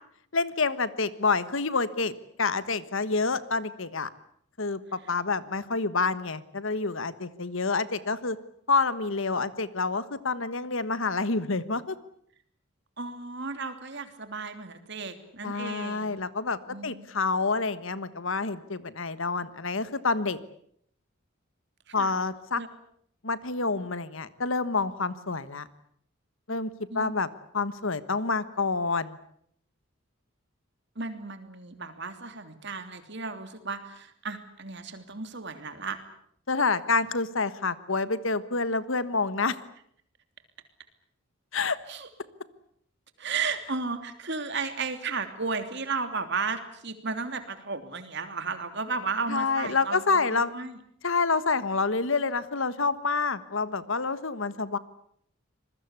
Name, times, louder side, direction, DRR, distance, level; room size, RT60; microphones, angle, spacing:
voice 1, 0.3-4.1 4.6-8.4 8.7-12.0 15.4-20.4 21.9-22.6 23.2-25.7 26.5-26.7 26.9-27.3 27.5-29.2 36.5-39.6 41.5-41.8 49.3-50.5 51.0-54.8, left 4 dB, 65° left, 15 dB, 1.4 m, -28 dB
voice 2, 13.0-16.2 16.7-17.1 21.9-22.1 22.6-22.7 26.9-27.1 30.9-36.0 41.9-42.1 43.2-50.8, right 4 dB, 55° right, 9 dB, 3.0 m, -34 dB
26.0 x 21.5 x 8.3 m, 0.68 s
head